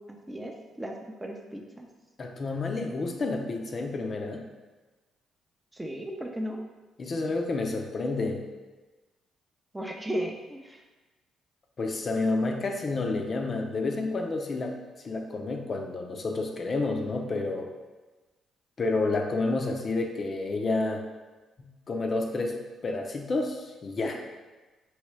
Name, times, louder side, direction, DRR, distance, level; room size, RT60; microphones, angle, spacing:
voice 1, 0.1-0.9 1.2-1.9 5.7-6.6 9.7-10.8, equal, 10° right, 2 dB, 0.6 m, -35 dB
voice 2, 2.2-4.5 7.0-8.4 11.8-14.7 15.0-17.7 18.8-21.0 21.6-22.6 22.8-24.2, left 3 dB, 40° left, 3 dB, 0.6 m, -29 dB
4.7 x 3.1 x 3.2 m, 1.2 s
cardioid pair, 90°, 0 cm